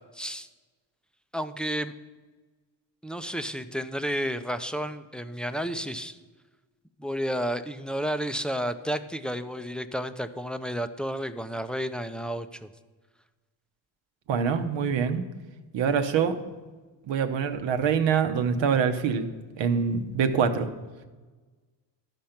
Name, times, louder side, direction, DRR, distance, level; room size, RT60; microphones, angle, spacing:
voice 1, 0.1-0.5 1.3-1.9 3.0-6.2 7.0-12.7, equal, ahead, 10 dB, 0.4 m, -31 dB
voice 2, 14.3-15.3 15.7-16.4 17.1-19.3 19.6-20.7, right 6 dB, 75° right, 8 dB, 1.0 m, -25 dB
13.0 x 5.3 x 5.8 m, 1.3 s
cardioid pair, 90°, 44 cm